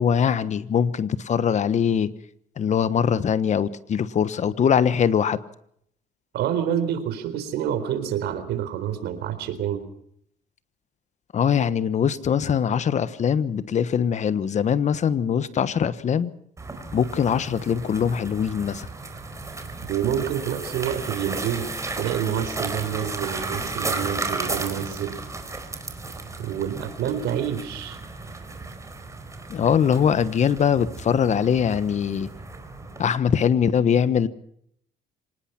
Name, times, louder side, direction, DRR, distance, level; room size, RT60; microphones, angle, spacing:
voice 1, 0.0-2.1 2.6-5.4 11.3-16.3 16.9-18.9 29.5-32.3 33.0-34.3, left 8 dB, 45° left, 1.2 m, -22 dB
voice 2, 6.3-9.8 19.9-21.7 22.0-25.2 26.4-28.0, right 9 dB, 75° right, 4.1 m, -28 dB
sound 1, 16.6-33.1, right 3 dB, 20° right, 4.3 m, -34 dB
25.0 x 19.5 x 5.9 m
cardioid pair, 110°, 17 cm